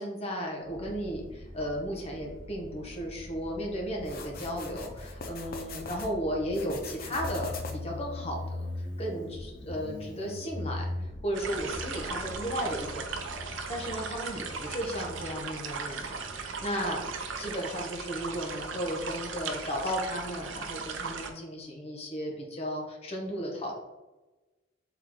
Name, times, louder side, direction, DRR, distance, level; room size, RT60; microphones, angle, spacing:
voice 1, 0.0-23.7, equal, 35° left, 0 dB, 1.0 m, -35 dB
Motorcycle, 0.6-17.8, left 1 dB, 75° left, 1.1 m, -42 dB
sound 1, 4.0-6.1 6.5-8.0, left 3 dB, 50° left, 0.6 m, -42 dB
sound 2, 11.3-21.3, right 5 dB, 80° right, 0.5 m, -37 dB
3.9 x 3.6 x 3.1 m, 1.1 s
head